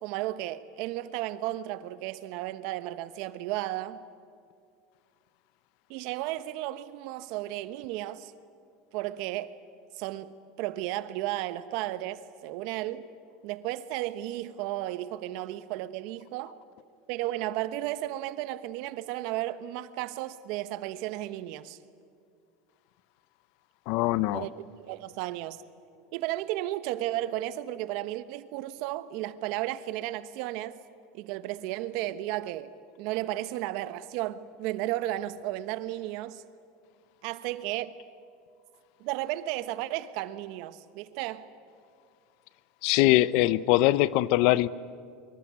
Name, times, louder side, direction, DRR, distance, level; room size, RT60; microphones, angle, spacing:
voice 1, 0.0-4.0 5.9-8.3 8.9-9.5 9.9-13.1 13.4-16.5 17.1-21.8 24.3-24.5 24.8-25.6 26.1-30.8 31.1-36.4 37.2-37.9 39.0-41.5, right 15 dB, 65° right, 1.2 m, -34 dB
voice 2, 23.9-24.5 42.8-44.7, left 17 dB, 65° left, 0.7 m, -22 dB
25.0 x 24.0 x 9.5 m
supercardioid pair, 110°, 0 cm